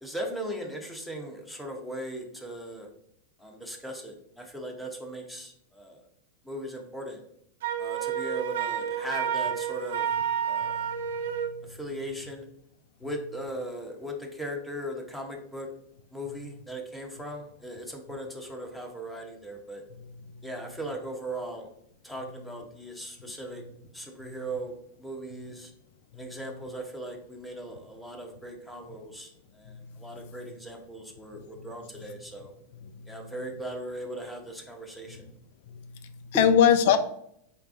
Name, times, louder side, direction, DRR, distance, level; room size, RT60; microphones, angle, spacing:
voice 1, 0.0-2.9 3.4-6.0 6.4-7.2 7.8-10.1 10.4-10.9 11.7-12.5 13.0-15.7 16.1-19.8 20.4-21.7 22.0-23.6 23.9-25.7 26.1-32.5 33.1-35.3, right 1 dB, ahead, 1 dB, 0.7 m, -38 dB
Wind instrument woodwind instrument, 7.6-11.6, right 8 dB, 60° right, 0.4 m, -30 dB
voice 2, 10.6-11.8 20.3-20.5 24.2-24.4 26.1-26.2 29.7-30.4 31.3-31.7 31.9-32.0 32.8-33.3 35.7-37.0, left 8 dB, 50° left, 10 dB, 0.3 m, -27 dB
4.9 x 3.4 x 2.4 m, 0.72 s
figure-of-eight pair, 90°, 0 cm